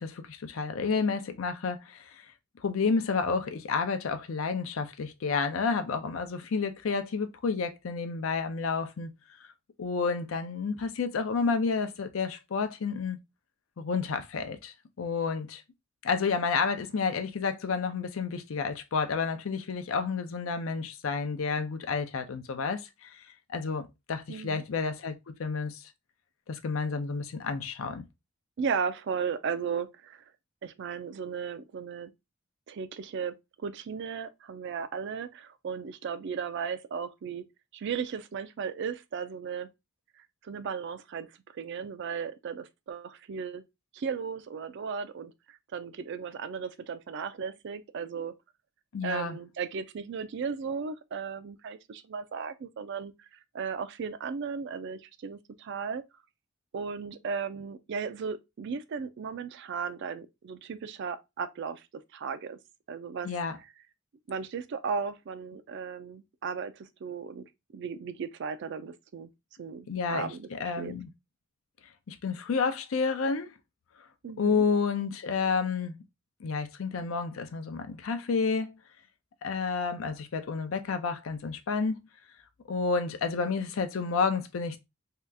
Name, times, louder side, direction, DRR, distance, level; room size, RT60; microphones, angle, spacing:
voice 1, 0.0-2.1 2.6-9.1 9.8-13.2 13.8-15.6 16.0-23.2 23.5-25.1 25.4-25.8 26.5-28.0 48.9-49.4 63.2-63.6 69.9-71.1 72.1-73.5 74.4-75.9 76.4-78.8 79.4-82.0 82.7-84.8, left 5 dB, 80° left, 0.5 m, -30 dB
voice 2, 24.3-24.6 28.6-30.2 30.6-32.1 32.7-37.4 37.7-39.7 40.4-43.6 43.9-48.3 49.0-53.1 53.5-56.0 56.7-61.8 62.1-62.6 62.9-63.3 64.3-67.4 67.7-69.3 69.6-71.0 74.2-74.6, right 6 dB, 60° right, 0.4 m, -36 dB
2.8 x 2.3 x 3.2 m
head